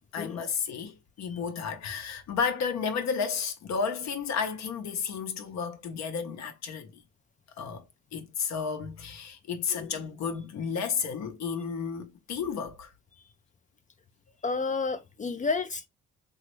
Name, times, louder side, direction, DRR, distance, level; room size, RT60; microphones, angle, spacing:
voice 1, 0.1-7.0 7.6-7.8 8.1-12.9, left 6 dB, 65° left, 0.7 m, -32 dB
voice 2, 14.4-15.9, left 4 dB, 25° left, 0.3 m, -30 dB
3.0 x 2.3 x 3.0 m
cardioid pair, 90°, 30 cm